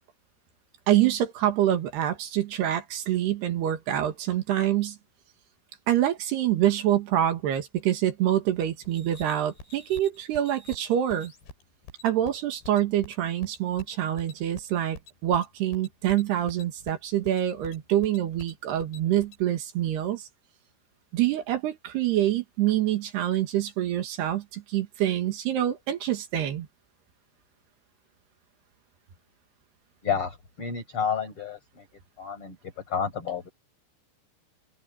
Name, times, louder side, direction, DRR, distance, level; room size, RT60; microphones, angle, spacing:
voice 1, 0.9-5.0 5.9-11.3 12.0-20.2 21.1-26.7, right 12 dB, 70° right, 3.7 m, -26 dB
sound 1, 8.9-19.4, left 3 dB, 70° left, 9.5 m, -47 dB
voice 2, 30.0-31.9 32.2-33.5, left 7 dB, 30° left, 5.3 m, -30 dB
omnidirectional pair, 5.2 m